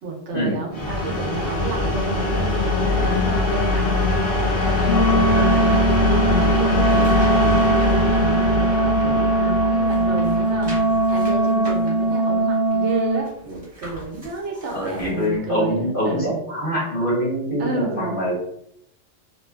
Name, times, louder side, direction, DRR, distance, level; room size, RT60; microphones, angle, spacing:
voice 1, 0.0-3.9 4.4-10.8 11.1-16.4 17.6-18.3, right 3 dB, 70° right, 1 dB, 0.9 m, -31 dB
sound 1, 0.7-12.4, left 2 dB, 30° left, 0.9 m, -22 dB
Wind instrument woodwind instrument, 4.8-13.3, right 2 dB, 70° left, 0.8 m, -20 dB
sound 2, 6.6-8.0 8.4-9.5 9.8-15.4 15.8-15.9, equal, 30° right, 1.1 m, -43 dB
voice 2, 14.7-18.3, equal, 45° left, -5 dB, 1.2 m, -24 dB
3.1 x 2.5 x 2.3 m, 0.73 s
omnidirectional pair, 1.3 m